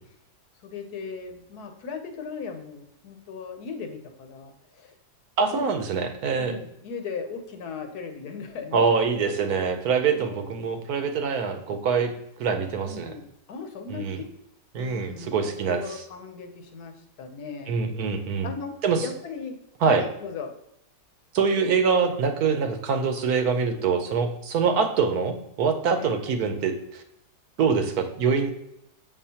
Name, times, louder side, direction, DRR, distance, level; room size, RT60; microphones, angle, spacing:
voice 1, 0.6-4.9 5.5-5.7 6.3-8.8 9.2-9.6 10.1-10.7 12.8-14.3 14.7-17.8 18.4-19.6 19.8-20.5 26.0-26.1, left 5 dB, 70° left, 6 dB, 1.3 m, -38 dB
voice 2, 5.4-6.6 8.7-12.1 12.4-13.1 13.9-14.2 14.7-16.0 17.7-18.5 18.8-19.0 19.8-20.0 21.3-27.0 27.6-28.5, right 5 dB, 70° right, 6 dB, 1.1 m, -24 dB
7.0 x 5.5 x 2.8 m, 0.80 s
omnidirectional pair, 1.8 m